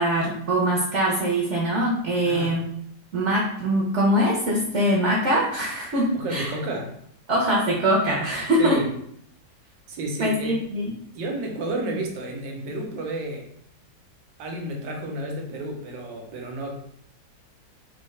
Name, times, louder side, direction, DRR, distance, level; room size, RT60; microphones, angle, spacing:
voice 1, 0.0-2.6 3.1-6.5 7.3-8.8 10.2-10.9, equal, 55° right, -2 dB, 0.9 m, -23 dB
voice 2, 2.2-2.6 6.1-6.9 8.6-8.9 9.9-10.6 11.1-13.5 14.4-16.7, right 1 dB, 85° right, 1 dB, 1.5 m, -31 dB
4.6 x 2.8 x 3.2 m, 0.70 s
omnidirectional pair, 1.9 m